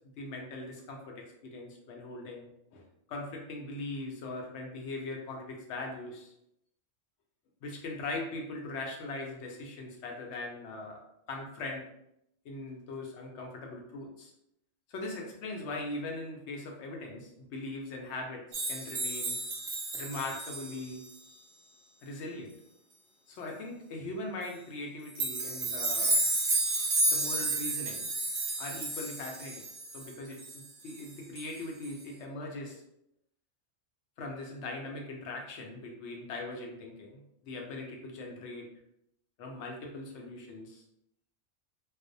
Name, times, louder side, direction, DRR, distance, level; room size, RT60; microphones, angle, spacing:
voice 1, 0.2-6.3 7.6-11.0 11.3-11.8 12.4-14.3 14.9-19.4 19.9-21.0 22.0-22.5 23.3-26.2 27.1-28.1 28.6-29.6 29.9-32.8 34.2-38.7 39.4-40.8, left 2 dB, 70° left, 0 dB, 0.8 m, -40 dB
sound 1, 18.5-21.1 25.1-31.1 31.3-31.6 31.8-31.9, right 2 dB, 55° right, 0.6 m, -31 dB
2.5 x 2.0 x 2.5 m, 0.79 s
omnidirectional pair, 1.3 m